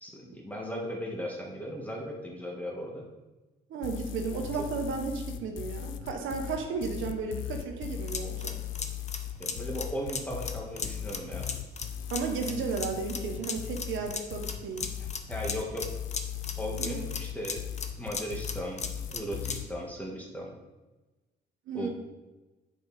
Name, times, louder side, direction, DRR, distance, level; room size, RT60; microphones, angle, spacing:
voice 1, 0.0-3.0 9.4-11.5 15.3-15.9 16.6-17.6 18.0-20.5 21.7-21.9, equal, 5° left, -2 dB, 1.6 m, -37 dB
voice 2, 3.7-8.6 12.1-14.8 16.8-17.2 21.7-21.9, right 5 dB, 80° right, 3 dB, 1.0 m, -34 dB
sound 1, 3.8-19.7, left 11 dB, 80° left, 0.5 m, -38 dB
sound 2, 7.9-19.7, left 5 dB, 35° left, 0.7 m, -38 dB
6.8 x 5.0 x 4.2 m, 1.1 s
cardioid pair, 90°, 20 cm